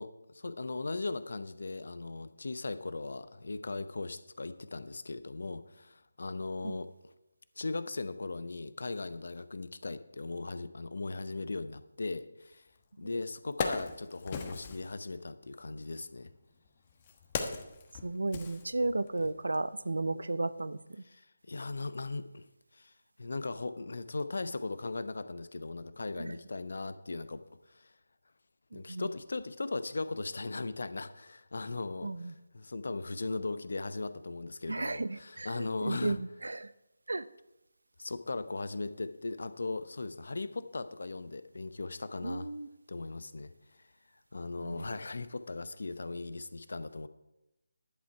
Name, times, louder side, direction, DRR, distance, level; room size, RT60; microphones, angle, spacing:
voice 1, 0.0-6.9 7.6-12.7 13.0-16.3 21.0-22.9 23.2-27.9 28.7-36.2 38.0-42.5 42.9-43.9 44.3-47.1, left 3 dB, 60° left, 12 dB, 0.8 m, -38 dB
Wood, 12.8-12.9 13.3-14.9 15.9-19.2 19.5-19.7, left 5 dB, 30° left, 1.2 m, -38 dB
voice 2, 18.0-21.0 26.2-26.3 28.7-29.1 32.0-32.3 34.7-36.7 37.1-37.3 42.2-42.7 44.6-44.8, right 2 dB, 70° right, 16 dB, 0.6 m, -34 dB
11.0 x 10.5 x 4.6 m, 0.92 s
figure-of-eight pair, 155°, 0 cm